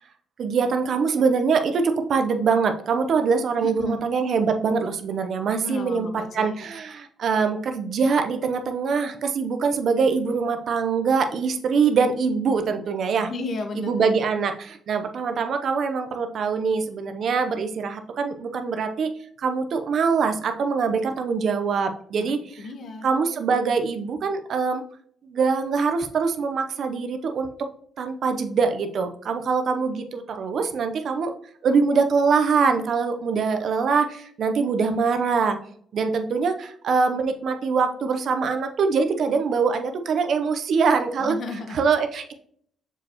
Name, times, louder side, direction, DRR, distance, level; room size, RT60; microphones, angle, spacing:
voice 1, 0.4-6.1 6.3-13.3 13.8-19.1 19.4-22.4 23.0-24.8 25.2-27.5 28.0-31.3 31.6-35.6 35.9-41.4 41.7-42.3, right 5 dB, 60° right, 7 dB, 0.7 m, -23 dB
voice 2, 3.6-4.0 5.6-6.5 13.3-14.1 22.1-22.3 22.6-23.1 41.2-41.8, left 3 dB, 55° left, 6 dB, 1.1 m, -33 dB
6.7 x 4.9 x 2.9 m, 0.63 s
cardioid pair, 90°, 0 cm